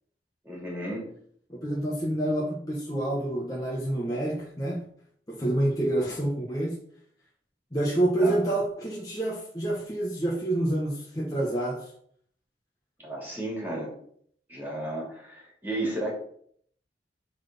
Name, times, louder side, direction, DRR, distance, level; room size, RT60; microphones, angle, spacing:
voice 1, 0.4-1.1 8.2-8.4 13.0-13.9 14.5-16.1, right 1 dB, 10° right, -4 dB, 3.2 m, -33 dB
voice 2, 1.5-4.8 5.3-6.7 7.7-11.9, right 1 dB, 20° left, -4 dB, 1.3 m, -28 dB
9.2 x 4.2 x 5.5 m, 0.63 s
head